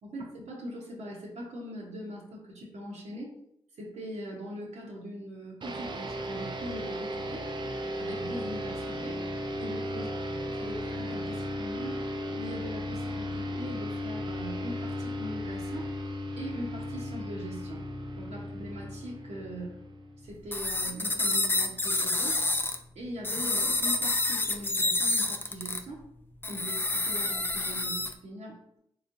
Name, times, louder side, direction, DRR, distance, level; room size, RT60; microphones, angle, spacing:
voice 1, 0.0-3.3 3.7-7.5 8.0-9.2 9.6-12.0 12.3-16.0 16.4-17.8 18.2-19.8 20.2-22.4 22.9-26.0 26.5-28.8, equal, 75° right, -3 dB, 0.9 m, -41 dB
sound 1, 5.6-20.4, equal, 40° right, 0.5 m, -35 dB
sound 2, 20.5-22.8 23.2-25.8 26.4-28.1, left 2 dB, 20° left, 0.4 m, -28 dB
3.2 x 3.1 x 2.6 m, 0.73 s
cardioid pair, 60°, 12 cm